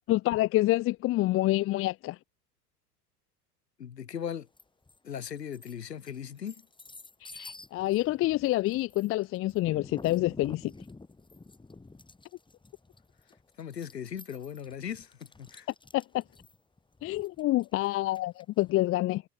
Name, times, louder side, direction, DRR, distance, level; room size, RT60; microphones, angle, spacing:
voice 1, 0.1-2.2 7.2-10.7 15.9-16.2 17.0-19.2, left 17 dB, 30° left, 0.6 m, -27 dB
voice 2, 3.8-4.5 5.0-6.6 13.6-15.7, left 8 dB, 85° left, 2.7 m, -38 dB
sound 1, 4.6-5.0 5.4-18.6, left 3 dB, 10° left, 3.8 m, -50 dB
hypercardioid pair, 90°, 48 cm